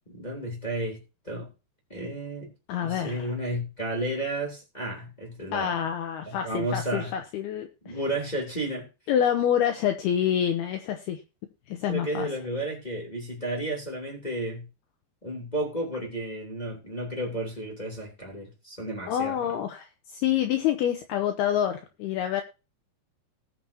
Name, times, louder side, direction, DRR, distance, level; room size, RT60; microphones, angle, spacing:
voice 1, 0.1-1.5 1.9-2.5 2.8-5.8 6.3-7.1 7.8-8.9 11.9-14.7 15.2-19.4, right 1 dB, 10° left, -1 dB, 2.3 m, -32 dB
voice 2, 2.7-3.3 5.5-8.0 9.1-11.2 11.7-12.3 19.1-22.4, left 9 dB, 75° left, 6 dB, 2.5 m, -27 dB
19.5 x 7.1 x 2.8 m, 0.30 s
omnidirectional pair, 5.3 m